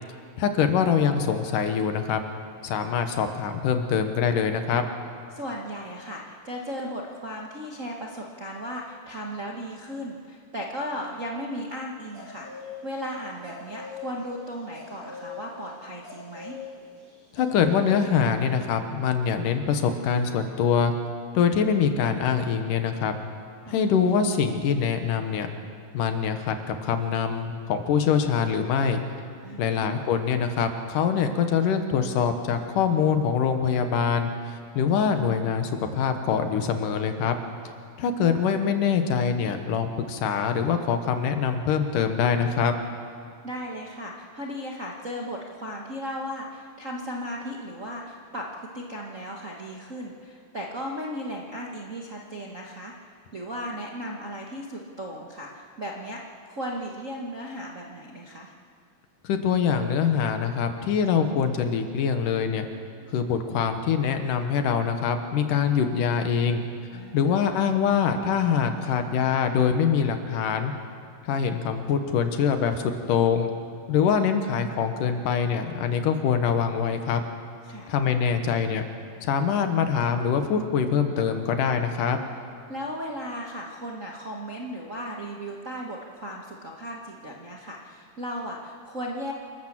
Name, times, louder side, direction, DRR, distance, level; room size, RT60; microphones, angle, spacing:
voice 1, 0.4-2.2 2.6-4.8 17.3-20.9 21.3-23.2 23.7-25.5 25.9-29.0 29.6-37.4 38.0-42.7 59.2-62.7 63.1-66.6 67.1-70.7 71.2-73.5 73.9-77.2 77.9-78.8 79.2-82.2, left 7 dB, 80° left, 7 dB, 2.8 m, -24 dB
voice 2, 5.3-16.6 23.6-23.7 29.4-30.0 43.4-52.9 53.3-58.5 66.9-67.4 77.6-77.9 82.7-89.3, equal, 45° right, -2 dB, 1.0 m, -36 dB
sound 1, 12.1-12.7 13.0-13.1 13.3-18.0, left 5 dB, 30° right, 5.7 m, -42 dB
27.5 x 13.0 x 7.5 m, 2.4 s
omnidirectional pair, 3.8 m